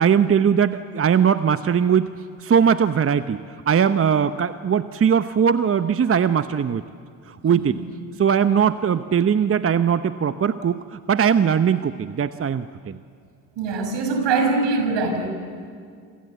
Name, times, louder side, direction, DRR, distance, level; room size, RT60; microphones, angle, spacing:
voice 1, 0.0-2.1 2.4-6.8 7.3-7.8 8.2-13.0, right 7 dB, 30° right, 11 dB, 0.9 m, -20 dB
voice 2, 7.5-7.9 8.6-8.7 13.6-15.3, right 4 dB, 65° right, 6 dB, 6.2 m, -23 dB
28.0 x 26.0 x 8.2 m, 2.2 s
hypercardioid pair, 60°, 47 cm